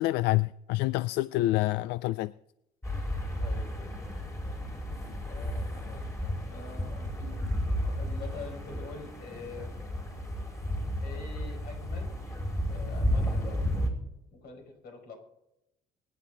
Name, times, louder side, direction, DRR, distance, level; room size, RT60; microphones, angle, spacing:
voice 1, 0.0-2.3, left 17 dB, 90° left, 0.4 m, -27 dB
sound 1, 2.8-13.9, equal, 20° left, 4.8 m, -33 dB
voice 2, 3.4-4.1 5.2-7.1 7.8-9.7 11.0-12.1 12.7-13.7 14.3-15.1, left 4 dB, 65° left, 5.3 m, -45 dB
24.0 x 10.0 x 3.9 m
cardioid pair, 110°, 17 cm